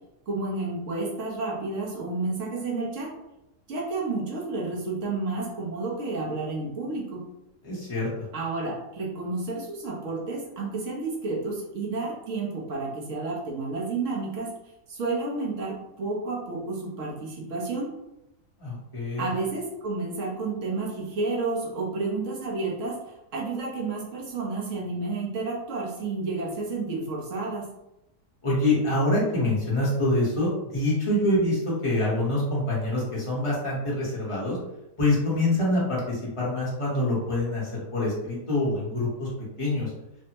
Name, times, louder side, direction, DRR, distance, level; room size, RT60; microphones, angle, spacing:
voice 1, 0.3-3.2 3.7-7.2 8.3-14.5 14.9-17.9 19.2-27.7, right 3 dB, 55° right, -3 dB, 1.0 m, -31 dB
voice 2, 7.6-8.1 18.6-19.3 28.4-34.6 35.0-39.3 39.6-39.9, left 1 dB, 25° left, -6 dB, 0.7 m, -25 dB
3.3 x 2.1 x 2.8 m, 0.87 s
omnidirectional pair, 1.8 m